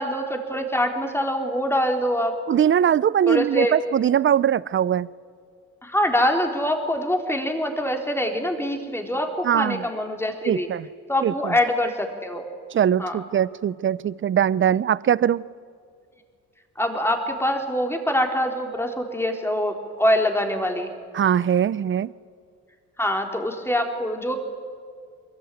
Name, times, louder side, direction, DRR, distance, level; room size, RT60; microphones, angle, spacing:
voice 1, 0.0-2.3 3.3-3.8 5.8-10.7 11.1-12.5 13.0-13.2 16.8-20.9 23.0-24.4, left 1 dB, 10° left, 3 dB, 3.8 m, -24 dB
voice 2, 2.5-5.1 9.4-9.8 10.5-10.9 11.2-11.5 12.7-15.4 21.1-22.1, right 9 dB, 40° right, 20 dB, 0.6 m, -21 dB
23.0 x 22.0 x 9.3 m, 2.2 s
cardioid pair, 90°, 30 cm